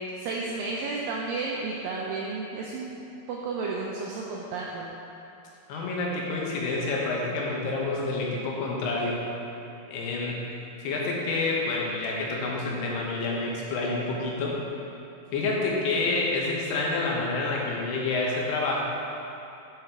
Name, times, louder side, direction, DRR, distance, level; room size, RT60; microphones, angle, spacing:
voice 1, 0.0-3.0 3.3-4.9, right 3 dB, 90° right, -3 dB, 2.0 m, -32 dB
voice 2, 5.7-9.2 9.9-10.5 10.8-14.6 15.3-18.8, left 3 dB, 80° left, -3 dB, 3.0 m, -28 dB
9.1 x 5.6 x 3.5 m, 2.8 s
omnidirectional pair, 4.7 m